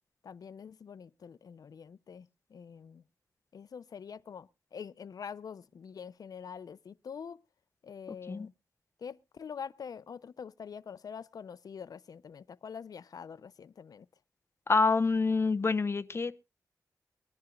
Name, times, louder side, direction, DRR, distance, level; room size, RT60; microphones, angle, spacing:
voice 1, 0.2-3.0 3.5-7.4 7.8-8.5 9.0-14.1, left 7 dB, 70° left, 0.6 m, -45 dB
voice 2, 14.7-16.3, left 4 dB, 40° left, 0.8 m, -27 dB
23.0 x 10.5 x 2.3 m
wide cardioid pair, 90°, 7 cm